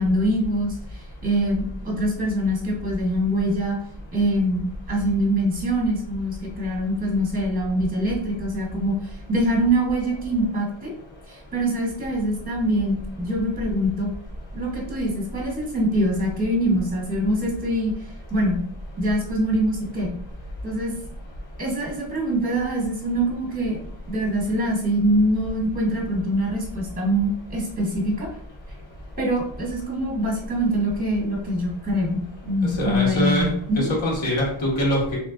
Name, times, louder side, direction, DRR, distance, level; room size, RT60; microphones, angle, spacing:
voice 1, 0.0-3.8 4.1-10.9 11.3-14.1 14.5-17.9 18.3-18.6 19.0-20.1 20.6-20.9 21.6-23.8 24.1-28.3 29.2-33.9, right 1 dB, 15° right, -1 dB, 1.0 m, -24 dB
voice 2, 32.8-33.5 33.7-35.2, equal, 65° left, -5 dB, 1.6 m, -23 dB
3.5 x 2.9 x 3.6 m, 0.64 s
wide cardioid pair, 165°, 49 cm